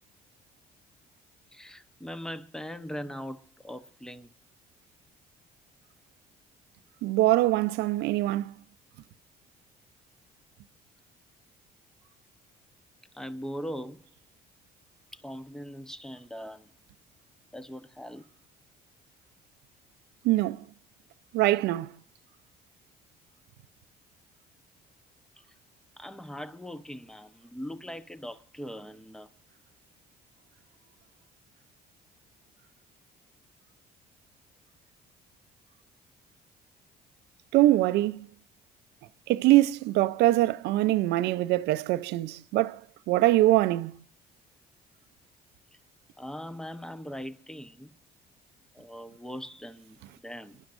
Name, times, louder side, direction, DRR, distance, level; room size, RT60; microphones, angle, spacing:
voice 1, 1.5-4.3 13.1-14.1 15.1-16.7 17.5-18.3 25.4-25.5 26.0-29.3 46.2-47.9 48.7-50.6, equal, 5° left, 0.9 m, -40 dB
voice 2, 7.0-8.5 20.2-20.6 21.3-21.9 37.5-38.3 39.3-42.8 43.1-44.0, right 16 dB, 85° right, 0.6 m, -23 dB
26.5 x 11.5 x 2.6 m
cardioid pair, 110°, 17 cm